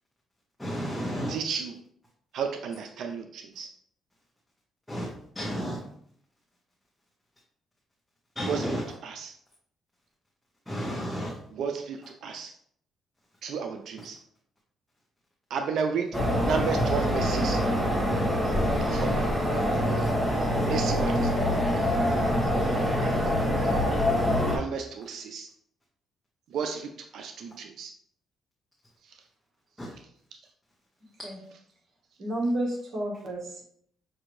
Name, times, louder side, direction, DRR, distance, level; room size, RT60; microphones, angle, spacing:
voice 1, 0.6-1.3 4.9-5.1 5.4-5.8 8.4-8.8 10.7-11.3 29.8-29.9, equal, 5° left, 1.0 m, -31 dB
voice 2, 1.3-1.8 2.3-3.7 8.5-9.3 11.5-12.5 13.4-14.2 15.5-17.6 18.9-19.3 20.6-21.3 24.5-25.5 26.5-27.9, right 6 dB, 70° right, 0.4 m, -32 dB
sound 1, 16.1-24.6, equal, 15° right, 1.2 m, -25 dB
voice 3, 19.5-19.9 31.2-31.4 32.2-33.6, right 1 dB, 50° right, 1.3 m, -31 dB
5.9 x 2.6 x 3.1 m
cardioid pair, 90°, 0 cm